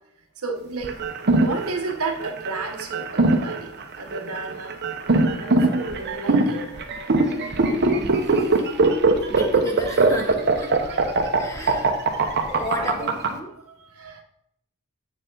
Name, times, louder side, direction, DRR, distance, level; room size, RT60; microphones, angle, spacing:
voice 1, 0.4-0.9 1.3-3.7 4.0-4.8 5.3-7.1 10.9-11.0 11.5-11.8 12.8-13.1 13.6-14.2, right 3 dB, 70° right, 4 dB, 1.1 m, -33 dB
sound 1, 0.8-13.3, right 3 dB, 50° right, 0.9 m, -21 dB
voice 2, 7.2-8.6 9.3-10.7 11.2-11.9 12.5-13.5, equal, 15° left, 3 dB, 1.1 m, -33 dB
7.8 x 6.8 x 3.9 m, 0.76 s
head